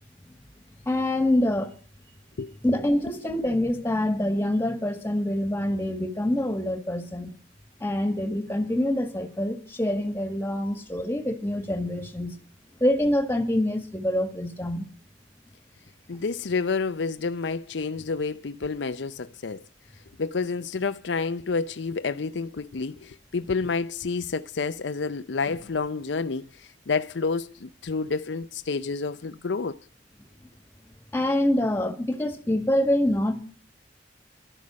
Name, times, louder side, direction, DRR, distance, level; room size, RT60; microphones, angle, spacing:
voice 1, 0.9-1.7 2.6-7.3 7.8-12.4 12.8-14.9 31.1-33.3, left 1 dB, 15° left, 1.9 m, -25 dB
voice 2, 16.1-19.6 20.2-29.8, left 4 dB, 75° left, 0.6 m, -29 dB
13.5 x 12.0 x 6.3 m
head